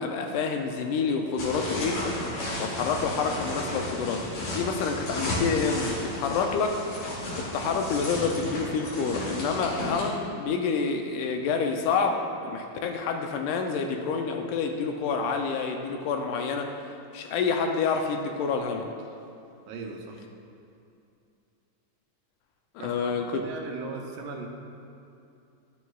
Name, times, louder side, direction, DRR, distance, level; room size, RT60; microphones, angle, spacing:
voice 1, 0.0-2.0 2.3-6.8 7.4-18.9 22.8-23.4, left 5 dB, 80° left, 4 dB, 2.0 m, -28 dB
sound 1, 1.4-10.1, left 1 dB, 50° left, 2.7 m, -33 dB
voice 2, 19.7-20.2 22.8-24.5, right 4 dB, 80° right, 2 dB, 2.4 m, -38 dB
12.5 x 9.3 x 2.3 m, 2.6 s
omnidirectional pair, 3.8 m